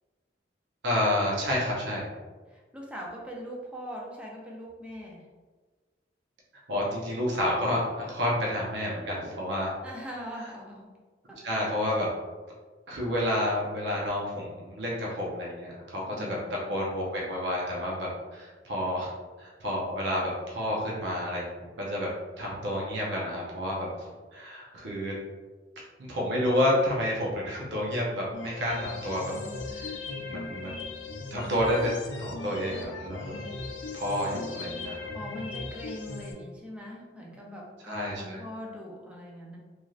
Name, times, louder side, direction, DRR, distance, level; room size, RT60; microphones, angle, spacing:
voice 1, 0.8-2.1 6.7-9.7 11.4-12.1 12.9-19.1 19.4-21.5 21.8-22.1 22.4-25.2 26.0-29.3 29.7-30.0 30.2-30.8 31.3-33.3 33.9-35.1 37.9-38.4, left 1 dB, 65° right, -3 dB, 0.6 m, -30 dB
voice 2, 2.5-5.2 9.8-10.9 11.3-11.4 11.7-11.8 16.1-16.5 35.1-39.6, equal, 5° right, -2 dB, 0.4 m, -41 dB
sound 1, 28.3-36.3, left 3 dB, 90° left, 0.5 m, -38 dB
3.1 x 2.6 x 2.3 m, 1.4 s
head